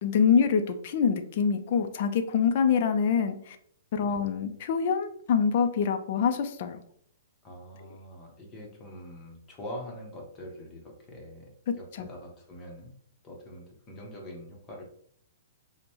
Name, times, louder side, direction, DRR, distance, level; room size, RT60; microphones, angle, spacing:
voice 1, 0.0-3.6 3.9-6.8 11.7-12.1, left 6 dB, 50° left, 7 dB, 0.4 m, -25 dB
voice 2, 7.4-12.9 13.2-14.8, equal, 20° left, 0 dB, 0.9 m, -44 dB
5.1 x 2.1 x 3.0 m, 0.64 s
hypercardioid pair, 150°, 0 cm